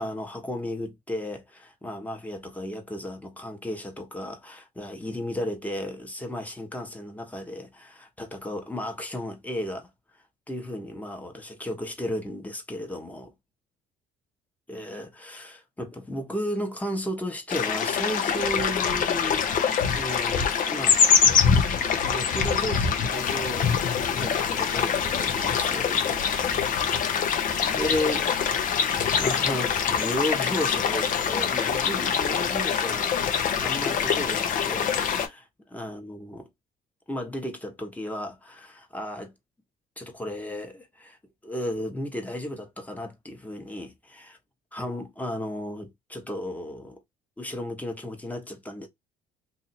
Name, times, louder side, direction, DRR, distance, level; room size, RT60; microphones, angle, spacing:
voice 1, 0.0-9.9 10.5-13.3 14.7-21.0 22.0-23.7 24.1-26.3 27.5-28.3 28.5-36.5 37.1-39.3 40.0-41.2 41.4-44.4 44.7-47.0 47.4-48.9, left 1 dB, 10° left, 1.1 m, -34 dB
sound 1, 17.5-35.3, left 7 dB, 55° left, 0.8 m, -24 dB
2.7 x 2.6 x 4.2 m
cardioid pair, 110°, 17 cm